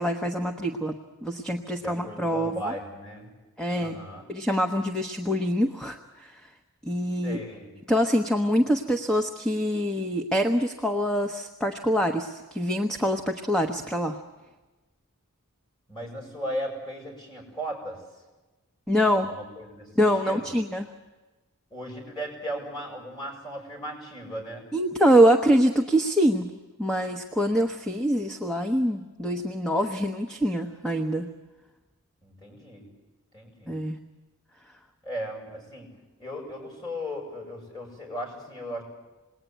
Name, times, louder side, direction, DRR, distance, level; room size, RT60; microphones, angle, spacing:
voice 1, 0.0-2.7 3.6-4.0 4.3-6.5 6.8-7.4 7.9-14.2 18.9-19.3 20.0-20.9 24.7-26.5 26.8-31.3 33.7-34.0, equal, 5° left, 3 dB, 1.1 m, -25 dB
voice 2, 1.7-3.3 3.7-4.3 7.2-7.7 15.9-18.0 19.1-20.5 21.7-24.7 32.2-32.8 33.3-33.8 35.0-35.9 36.2-38.8, equal, 20° left, 0 dB, 7.2 m, -36 dB
27.5 x 20.5 x 9.3 m, 1.2 s
head